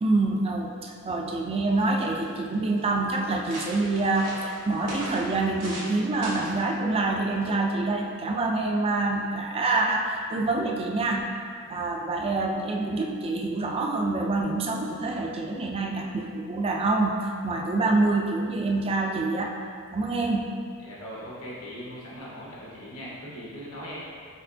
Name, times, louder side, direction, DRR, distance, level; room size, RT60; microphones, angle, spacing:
voice 1, 0.0-11.3 11.7-19.5 19.9-20.5, right 2 dB, 25° right, 1 dB, 0.3 m, -26 dB
sound 1, 1.7-2.3 2.9-3.0 3.2-5.9 6.2-6.6 7.4-7.7, right 1 dB, 85° right, 1.0 m, -39 dB
voice 2, 20.8-24.0, equal, 70° left, -6 dB, 1.1 m, -40 dB
4.3 x 4.2 x 2.6 m, 2.2 s
head